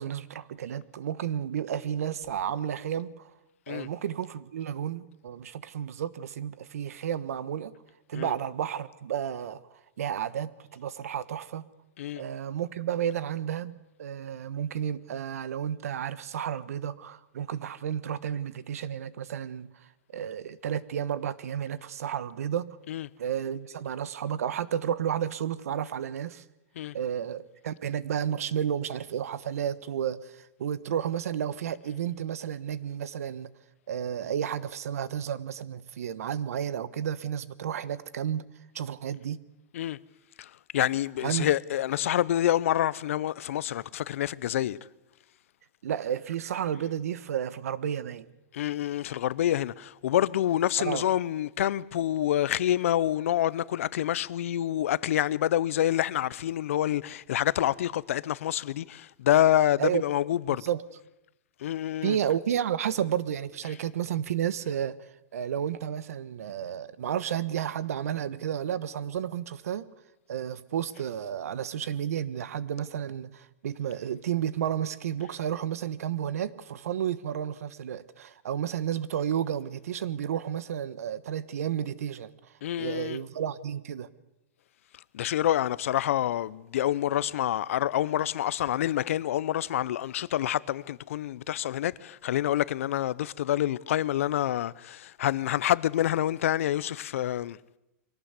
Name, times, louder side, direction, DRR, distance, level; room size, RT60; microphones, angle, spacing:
voice 1, 0.0-3.3 3.7-7.7 8.1-9.6 10.0-11.7 12.2-19.7 20.1-22.8 23.2-26.4 26.9-33.5 33.9-38.5 38.7-39.4 41.2-41.5 45.8-48.3 50.8-51.1 59.8-60.0 60.6-60.8 62.0-65.0 65.3-69.9 70.3-82.3 82.8-84.1, right 9 dB, 80° right, 1.2 m, -32 dB
voice 2, 40.4-44.8 48.5-60.6 61.6-62.2 82.6-83.2 85.1-97.6, left 12 dB, 65° left, 0.7 m, -27 dB
23.0 x 17.5 x 8.2 m
supercardioid pair, 170°, 8 cm